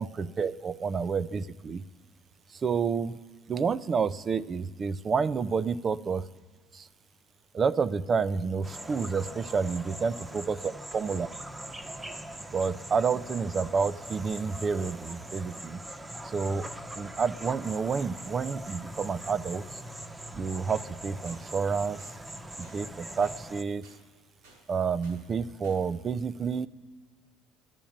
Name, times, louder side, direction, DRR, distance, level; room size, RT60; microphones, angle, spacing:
voice 1, 0.0-1.8 2.6-3.2 3.5-6.2 6.7-6.9 7.5-10.6 10.9-11.3 12.5-15.8 16.2-16.7 17.0-19.6 20.3-22.0 22.6-23.8 24.7-26.7, right 5 dB, 35° right, 17 dB, 0.6 m, -29 dB
sound 1, 8.6-23.6, right 1 dB, 10° right, 1.0 m, -42 dB
sound 2, 21.2-21.4 22.0-22.1 22.6-22.8 23.2-23.4 23.8-24.0 24.4-24.6 25.0-25.2 25.6-25.8, right 2 dB, 85° right, 5.4 m, -55 dB
11.0 x 11.0 x 8.8 m, 1.5 s
supercardioid pair, 95°, 0 cm